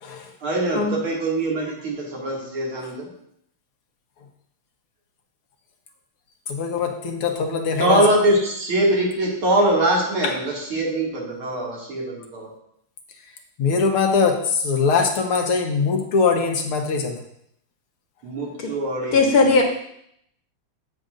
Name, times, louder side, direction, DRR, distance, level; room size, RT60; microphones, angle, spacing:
voice 1, 0.4-3.1 7.8-12.5 18.2-19.3 19.6-19.7, right 1 dB, 70° right, -4 dB, 3.3 m, -22 dB
voice 2, 6.5-8.0 13.6-17.1, left 5 dB, 80° left, 3 dB, 2.1 m, -21 dB
voice 3, 19.1-19.6, left 3 dB, 50° left, 2 dB, 1.6 m, -17 dB
15.5 x 6.5 x 2.6 m, 0.72 s
omnidirectional pair, 2.4 m